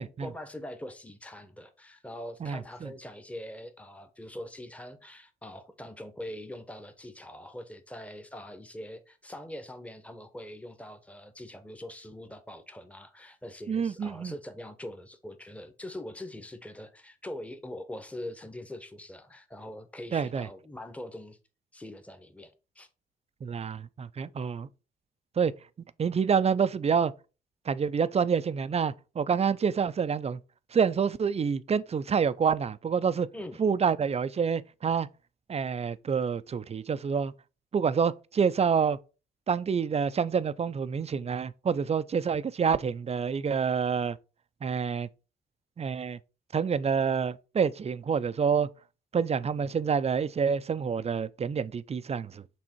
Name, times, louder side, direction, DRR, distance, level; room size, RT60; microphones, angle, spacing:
voice 1, 0.0-21.4 21.7-22.9 33.3-33.6, left 1 dB, 5° left, 1.1 m, -43 dB
voice 2, 2.4-2.9 13.7-14.3 20.1-20.5 23.4-24.7 25.4-25.5 26.0-27.1 27.7-30.4 30.7-33.3 33.6-35.1 35.5-37.3 37.7-39.0 39.5-44.2 44.6-45.1 45.8-46.2 46.5-48.7 49.1-52.4, right 6 dB, 30° right, 0.5 m, -27 dB
6.0 x 3.5 x 4.5 m
hypercardioid pair, 50°, 20 cm